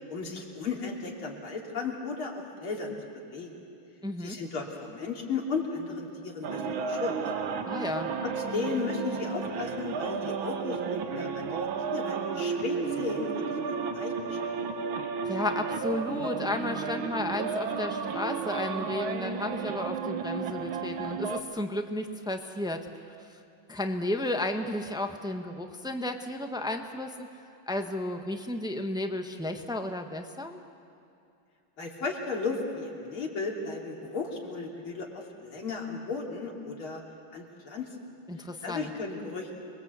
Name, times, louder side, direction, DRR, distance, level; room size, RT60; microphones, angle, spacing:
voice 1, 0.1-3.6 4.2-6.6 6.9-7.2 8.2-14.5 31.8-37.0 37.3-38.0 38.6-39.5, left 4 dB, 80° left, -1 dB, 3.7 m, -35 dB
voice 2, 4.0-4.4 7.6-8.1 15.2-23.2 23.7-27.3 27.7-30.6 38.3-38.9, left 1 dB, 5° right, 5 dB, 0.6 m, -33 dB
sound 1, 6.4-21.4, right 5 dB, 75° right, 2.0 m, -32 dB
27.0 x 21.5 x 8.2 m, 2.5 s
omnidirectional pair, 2.3 m